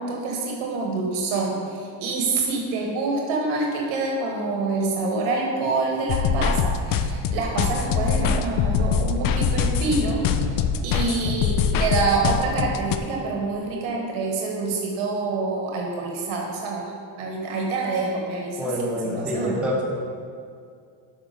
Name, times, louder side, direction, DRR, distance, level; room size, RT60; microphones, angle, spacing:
voice 1, 0.0-10.3 10.5-16.9 17.2-19.6, right 3 dB, 75° right, 0 dB, 1.5 m, -26 dB
sound 1, 6.1-13.0, left 6 dB, 45° left, 0.5 m, -23 dB
voice 2, 18.6-20.1, equal, ahead, -4 dB, 1.1 m, -26 dB
6.1 x 5.9 x 5.1 m, 2.3 s
cardioid pair, 110°, 49 cm